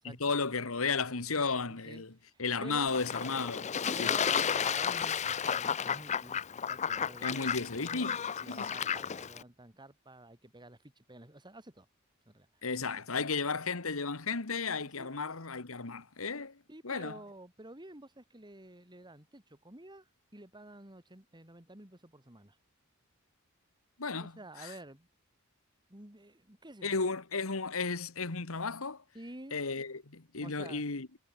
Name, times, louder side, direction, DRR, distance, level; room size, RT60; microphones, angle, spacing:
voice 1, 0.0-2.1 2.4-3.7 4.0-4.1 7.2-8.7 12.6-17.2 24.0-24.3 24.6-24.7 26.8-29.0 29.5-31.1, left 4 dB, 75° left, 1.7 m, -34 dB
voice 2, 1.7-2.0 2.3-2.9 3.9-8.1 8.4-11.9 12.2-12.5 15.0-15.1 16.7-22.6 24.2-25.1 25.9-27.0 29.1-29.6 30.4-30.8, right 1 dB, 20° right, 3.2 m, -50 dB
Fowl / Bird / Water, 2.9-9.4, left 7 dB, 35° left, 0.5 m, -33 dB
head